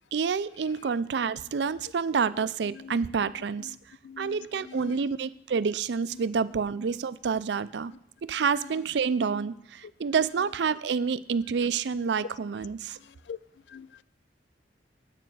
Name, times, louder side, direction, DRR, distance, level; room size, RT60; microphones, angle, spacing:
voice 1, 0.1-3.8 4.2-7.9 8.2-13.0, right 5 dB, 75° right, 16 dB, 0.4 m, -28 dB
voice 2, 2.6-3.0 3.6-3.8 4.0-5.0 6.1-6.3 7.9-8.0 8.5-8.9 10.2-10.3 12.9-13.4 13.7-14.0, left 7 dB, 80° left, 19 dB, 0.3 m, -45 dB
8.9 x 6.9 x 7.4 m, 0.71 s
head